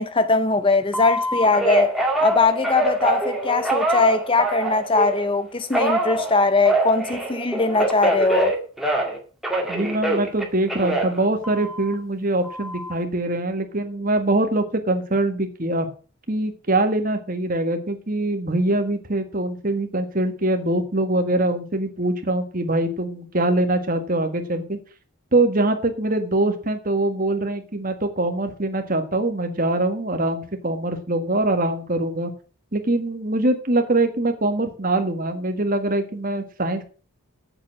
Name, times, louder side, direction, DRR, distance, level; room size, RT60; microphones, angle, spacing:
voice 1, 0.0-1.9 2.2-8.5, left 3 dB, 25° left, 0.6 m, -20 dB
Telephone, 0.9-5.3 5.7-9.2 9.4-11.9 12.4-12.9, right 1 dB, ahead, 2.1 m, -24 dB
voice 2, 9.7-15.9 16.3-24.8 25.3-32.3 32.7-36.8, right 2 dB, 40° right, 1.7 m, -23 dB
8.8 x 7.3 x 7.7 m
head